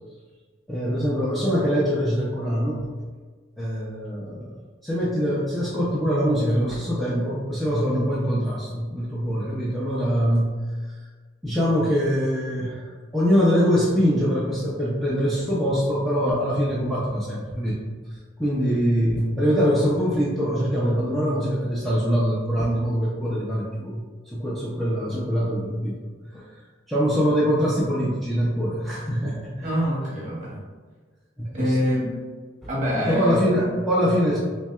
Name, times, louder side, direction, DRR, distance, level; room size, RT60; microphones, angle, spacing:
voice 1, 0.7-2.9 3.6-4.5 4.8-10.5 11.4-17.8 18.1-24.0 24.3-26.0 26.3-26.5 26.9-29.7 31.4-31.8 33.0-34.4, equal, ahead, -8 dB, 0.4 m, -23 dB
voice 2, 29.6-30.6 31.5-32.1 32.7-33.5, equal, 40° right, -5 dB, 1.2 m, -25 dB
5.6 x 2.2 x 2.3 m, 1.5 s
head